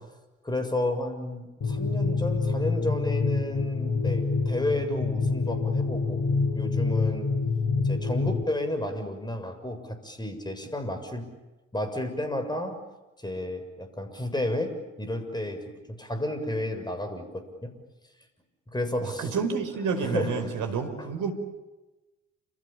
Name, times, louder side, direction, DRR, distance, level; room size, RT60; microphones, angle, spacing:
voice 1, 0.4-6.2 6.5-7.3 7.8-11.3 11.7-12.8 13.2-17.8 18.7-19.4 20.0-20.5 21.0-21.1, left 1 dB, 10° left, 8 dB, 6.9 m, -32 dB
sound 1, 1.6-8.4, left 4 dB, 40° left, 3.8 m, -26 dB
voice 2, 19.0-21.3, right 5 dB, 55° right, 7 dB, 5.2 m, -29 dB
29.0 x 27.5 x 7.2 m, 1.1 s
figure-of-eight pair, 55°, 38 cm